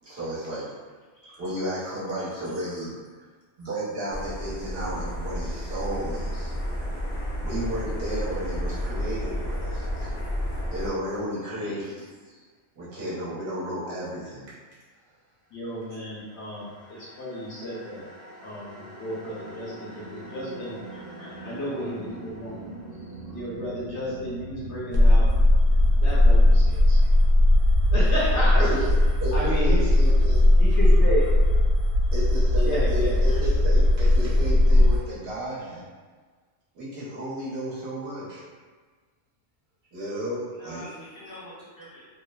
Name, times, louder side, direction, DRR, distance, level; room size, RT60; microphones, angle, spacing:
voice 1, 0.0-0.7 1.4-3.0 3.6-6.5 7.4-10.1 10.5-12.4 12.8-14.5 28.6-28.8 29.2-30.8 32.1-35.9 36.7-38.4 39.9-40.9, equal, 55° right, -9 dB, 1.1 m, -33 dB
voice 2, 1.2-1.5 2.2-2.3 11.5-11.8 16.9-17.1 20.9-21.5 33.2-33.5 40.5-42.1, left 1 dB, 20° left, -11 dB, 0.7 m, -46 dB
sound 1, 4.1-10.9, equal, 85° left, 0.3 m, -31 dB
voice 3, 15.5-18.0 18.4-18.7 19.0-20.8 21.4-22.8 23.3-25.3 26.0-27.0 27.9-28.7 29.3-29.9 30.6-31.3 32.6-33.1, equal, 70° left, -7 dB, 0.9 m, -32 dB
sound 2, 15.9-31.2, right 2 dB, 15° right, 0.9 m, -43 dB
sound 3, 24.9-35.0, left 1 dB, 90° right, 1.0 m, -18 dB
3.1 x 2.0 x 2.2 m, 1.4 s
omnidirectional pair, 1.3 m